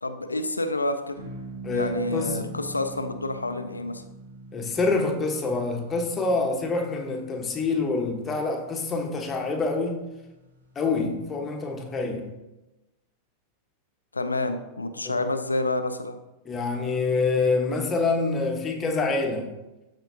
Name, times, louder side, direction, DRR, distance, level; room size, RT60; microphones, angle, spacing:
voice 1, 0.0-1.1 1.7-4.0 14.1-16.2, left 2 dB, 80° left, 8 dB, 0.5 m, -28 dB
sound 1, 1.2-11.7, right 2 dB, 70° right, 1.3 m, -44 dB
voice 2, 1.6-2.5 4.5-10.0 10.7-12.3 15.0-15.3 16.4-19.5, left 3 dB, 20° left, 2 dB, 1.1 m, -26 dB
13.0 x 4.4 x 2.7 m, 1.0 s
figure-of-eight pair, 90°, 0 cm